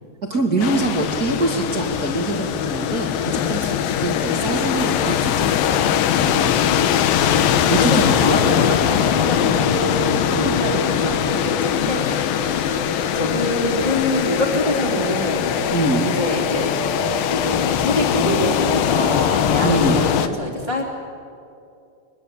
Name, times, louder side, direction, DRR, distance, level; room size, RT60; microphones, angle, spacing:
voice 1, 0.3-6.0 7.3-8.6 10.3-10.6 15.7-16.1 19.6-20.0, right 2 dB, 35° right, 1 dB, 1.6 m, -24 dB
sound 1, 0.6-20.3, left 9 dB, 70° left, 2.3 m, -21 dB
voice 2, 6.1-7.0 7.4-12.6 13.1-15.6 16.0-16.8 17.3-20.8, left 1 dB, 10° left, -4 dB, 2.3 m, -26 dB
sound 2, 9.4-17.7, right 8 dB, 80° right, 1.7 m, -33 dB
24.0 x 22.5 x 8.2 m, 2.5 s
omnidirectional pair, 5.0 m